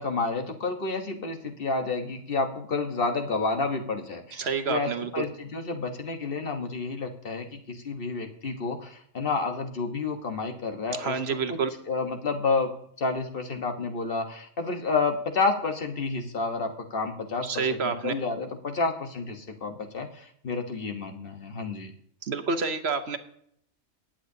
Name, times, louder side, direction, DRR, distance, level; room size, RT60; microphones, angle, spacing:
voice 1, 0.0-11.4 11.9-12.7 13.0-21.9, left 4 dB, 45° left, 4 dB, 1.4 m, -30 dB
voice 2, 4.3-5.2 11.0-11.7 17.4-18.1 22.2-23.2, right 5 dB, 60° right, 9 dB, 1.1 m, -28 dB
20.5 x 8.8 x 2.8 m, 0.69 s
omnidirectional pair, 1.3 m